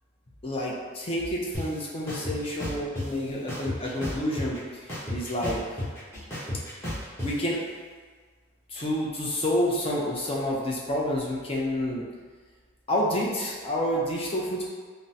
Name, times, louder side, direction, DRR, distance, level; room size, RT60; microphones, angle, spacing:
voice 1, 0.4-5.8 7.2-7.6 8.7-12.1 12.9-14.6, equal, 25° left, -4 dB, 0.5 m, -29 dB
sound 1, 1.5-1.6 2.1-3.1 3.5-4.6 4.9-7.3, left 1 dB, 10° left, 0.9 m, -32 dB
3.6 x 2.0 x 2.7 m, 1.5 s
head